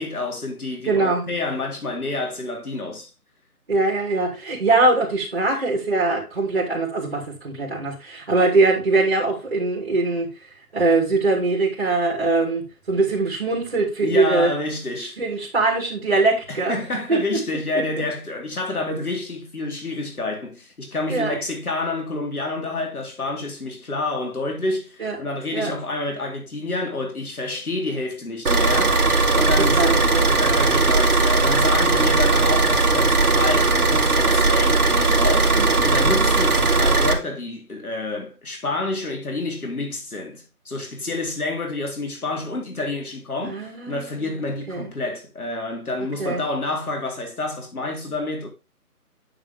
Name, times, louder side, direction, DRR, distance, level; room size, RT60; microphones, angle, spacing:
voice 1, 0.0-3.1 14.0-15.2 16.5-29.0 29.3-48.5, left 2 dB, 70° left, 3.5 m, -28 dB
voice 2, 0.9-1.2 3.7-10.3 10.7-12.6 12.9-14.5 15.0-16.8 17.1-17.2 21.1-21.4 25.0-25.1 25.5-25.7 29.6-30.3 35.5-36.3 43.4-44.4 44.7-44.9 46.2-46.4, right 3 dB, 35° right, 3.0 m, -22 dB
Car / Idling, 28.4-37.1, right 3 dB, 75° right, 2.1 m, -18 dB
9.3 x 5.0 x 3.6 m
figure-of-eight pair, 175°, 45 cm